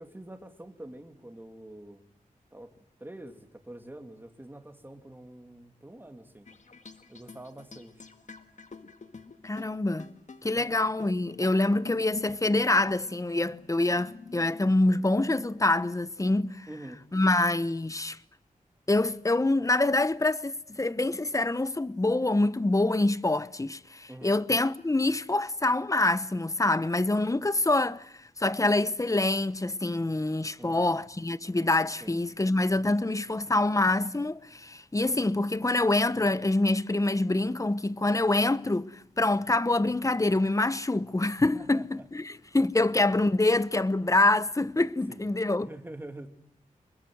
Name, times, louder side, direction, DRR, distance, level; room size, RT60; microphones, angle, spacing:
voice 1, 0.0-2.0 2.5-2.7 3.0-6.5 7.1-8.1 10.5-10.8 16.7-17.0 24.1-24.3 30.6-31.0 32.0-32.2 41.5-42.1 45.1-45.3 45.6-46.3, right 1 dB, 15° right, 3.0 m, -46 dB
sound 1, 6.5-15.9, left 4 dB, 60° left, 2.1 m, -48 dB
voice 2, 9.4-10.1 10.4-16.7 17.1-18.2 18.9-45.7, left 2 dB, 20° left, 1.0 m, -26 dB
26.0 x 22.0 x 7.9 m
wide cardioid pair, 75°, 14 cm